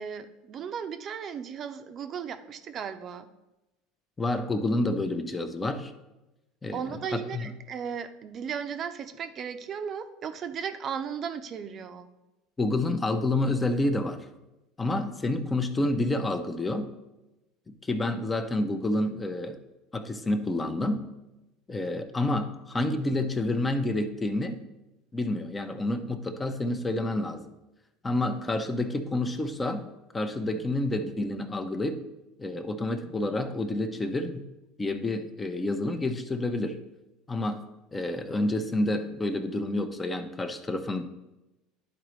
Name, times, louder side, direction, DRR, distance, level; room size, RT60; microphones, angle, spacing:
voice 1, 0.0-3.3 6.7-12.1, right 7 dB, 45° right, 9 dB, 0.6 m, -36 dB
voice 2, 4.2-5.9 6.6-6.8 7.1-7.4 12.6-14.2 14.8-16.9 17.7-19.6 19.9-21.1 21.7-24.6 25.1-27.4 28.0-29.9 30.1-32.0 32.4-34.4 34.8-36.8 37.3-37.6 37.9-41.0, left 2 dB, 20° left, 7 dB, 0.8 m, -29 dB
11.0 x 4.0 x 3.1 m, 0.98 s
supercardioid pair, 95°, 0 cm